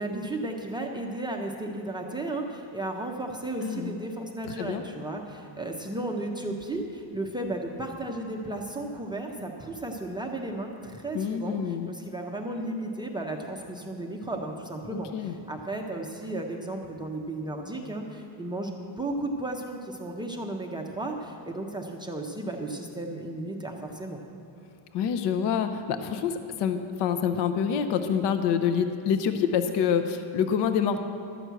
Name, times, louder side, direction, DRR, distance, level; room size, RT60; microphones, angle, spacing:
voice 1, 0.0-24.2, right 2 dB, 10° right, 0 dB, 0.5 m, -34 dB
voice 2, 3.6-3.9 4.5-4.8 11.1-11.9 15.1-15.3 24.9-31.0, left 7 dB, 60° left, 9 dB, 0.7 m, -26 dB
12.5 x 6.1 x 8.0 m, 2.8 s
cardioid pair, 175°, 47 cm